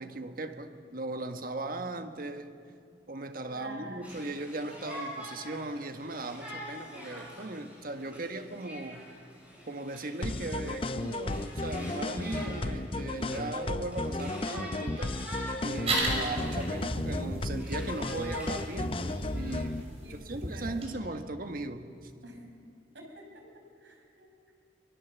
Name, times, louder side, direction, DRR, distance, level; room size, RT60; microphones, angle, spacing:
voice 1, 0.0-2.6 3.1-9.0 9.7-15.2 15.6-22.1, right 2 dB, 55° right, 7 dB, 1.5 m, -38 dB
voice 2, 3.5-4.3 20.0-20.8 22.2-22.4 22.9-24.5, right 1 dB, 80° right, 1 dB, 5.5 m, -48 dB
Conversation, 4.0-16.8 17.2-19.8, equal, 10° right, 7.3 m, -46 dB
sound 1, 10.2-19.8, left 2 dB, 30° left, 0.6 m, -34 dB
sound 2, 15.9-20.9, right 1 dB, 35° right, 5.5 m, -35 dB
24.5 x 21.5 x 7.2 m, 2.4 s
head